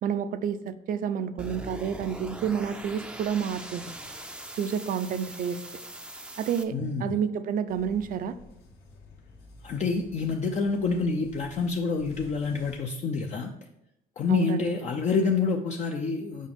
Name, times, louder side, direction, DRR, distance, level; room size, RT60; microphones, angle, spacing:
voice 1, 0.0-3.9 4.6-5.6 6.4-6.7 7.0-8.3 14.3-14.8, right 7 dB, 55° right, 12 dB, 0.5 m, -29 dB
sound 1, 1.4-6.6, right 1 dB, 5° right, 0.5 m, -41 dB
voice 2, 6.7-7.2 9.6-13.5 14.2-16.5, left 4 dB, 40° left, 2 dB, 0.6 m, -27 dB
sound 2, 7.7-12.8, left 2 dB, 75° left, 1.7 m, -51 dB
7.3 x 4.8 x 3.6 m, 0.83 s
cardioid pair, 110°, 17 cm